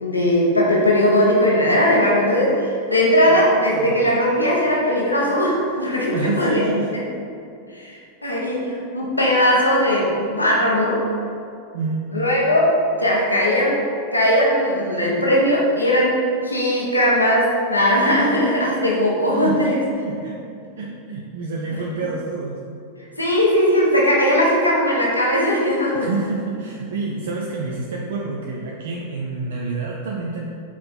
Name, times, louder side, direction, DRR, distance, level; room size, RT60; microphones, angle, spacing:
voice 1, 0.0-6.6 7.7-11.1 12.1-13.8 14.1-19.8 23.2-26.1, equal, 85° left, -3 dB, 0.9 m, -19 dB
voice 2, 3.3-4.0 6.1-6.9 11.7-12.1 19.4-20.3 20.8-22.6 26.0-30.5, right 3 dB, 60° right, -2 dB, 0.6 m, -28 dB
5.9 x 4.3 x 4.1 m, 2.5 s
figure-of-eight pair, 90°, 0 cm